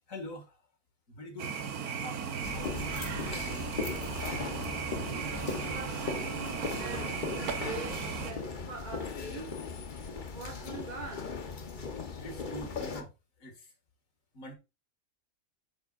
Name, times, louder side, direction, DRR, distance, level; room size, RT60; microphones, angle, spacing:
voice 1, 0.1-0.5 1.1-1.6 2.0-3.7 12.2-13.1 13.4-13.7 14.3-14.5, equal, 60° left, 2.3 m, -44 dB
sound 1, 1.4-8.3, right 6 dB, 85° right, 1.5 m, -36 dB
sound 2, 2.4-13.0, left 5 dB, 40° left, 0.9 m, -38 dB
voice 2, 5.2-9.5 10.3-11.3, right 3 dB, 30° right, 1.3 m, -44 dB
9.1 x 6.9 x 2.5 m
omnidirectional pair, 1.5 m